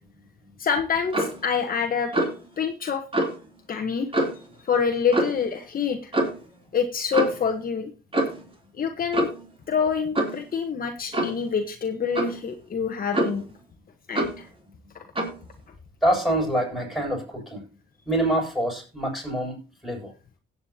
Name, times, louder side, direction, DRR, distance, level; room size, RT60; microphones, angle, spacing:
voice 1, 0.6-2.2 2.6-3.0 3.7-4.1 4.3-6.1 6.7-7.9 8.7-9.3 9.7-13.4 14.1-14.5, left 6 dB, 45° left, 4 dB, 1.3 m, -26 dB
Clock, 1.1-1.4 2.1-2.4 3.1-3.4 4.1-4.5 5.1-5.4 6.1-6.4 7.1-7.4 8.1-8.5 9.1-9.5 10.1-10.4 11.1-11.4 12.1-12.4 13.1-13.5 14.1-14.4 15.1-15.4, right 1 dB, 25° right, 3.3 m, -25 dB
voice 2, 16.0-17.6 18.1-20.1, right 1 dB, ahead, -1 dB, 7.5 m, -26 dB
16.5 x 8.4 x 2.9 m, 0.34 s
cardioid pair, 90°, 20 cm